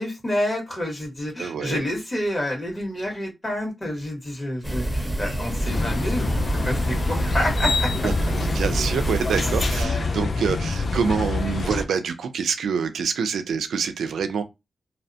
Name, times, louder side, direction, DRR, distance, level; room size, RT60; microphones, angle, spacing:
voice 1, 0.0-8.1 9.8-10.2, left 1 dB, 35° left, 1.5 m, -29 dB
voice 2, 1.4-1.8 8.0-8.1 8.6-14.4, right 6 dB, 85° right, 0.4 m, -26 dB
sound 1, 4.6-9.8, right 1 dB, 5° left, 1.0 m, -26 dB
sound 2, 5.6-11.8, left 3 dB, 65° left, 0.4 m, -26 dB
2.7 x 2.1 x 2.7 m
supercardioid pair, 40°, 0 cm